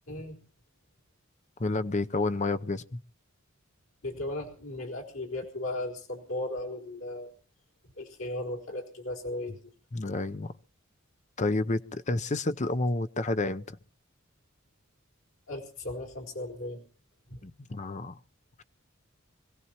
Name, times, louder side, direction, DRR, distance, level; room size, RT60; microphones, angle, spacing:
voice 1, 0.1-0.4 4.0-7.3 8.0-9.6 15.5-16.8 17.3-17.4, left 1 dB, 90° left, 4.2 m, -36 dB
voice 2, 1.6-3.0 9.9-10.5 11.4-13.8 17.4-18.2, left 2 dB, 35° left, 0.7 m, -30 dB
25.0 x 16.5 x 3.0 m
head